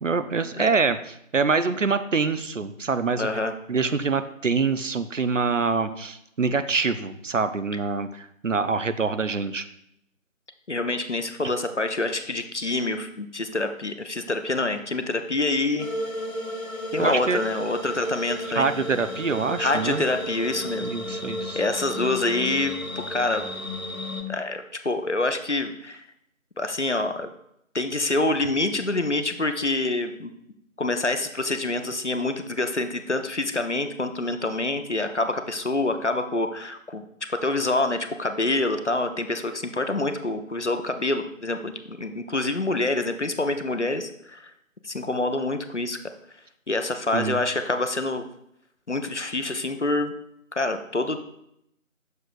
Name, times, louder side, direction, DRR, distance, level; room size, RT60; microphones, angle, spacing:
voice 1, 0.0-3.3 3.7-9.7 17.0-17.4 18.6-20.0 20.8-21.6 47.1-47.4, right 4 dB, 65° right, 11 dB, 0.5 m, -25 dB
voice 2, 3.2-3.5 10.7-15.9 16.9-18.7 19.6-20.9 21.5-22.7 23.1-23.4 24.3-26.1 26.6-27.3 27.7-30.3 30.8-37.0 37.3-44.5 44.8-46.0 46.7-48.3 48.9-50.1 50.5-51.2, left 2 dB, 60° left, 8 dB, 0.6 m, -26 dB
sound 1, 15.8-24.2, equal, 85° left, 1.1 m, -33 dB
6.8 x 6.4 x 2.4 m, 0.76 s
figure-of-eight pair, 180°, 41 cm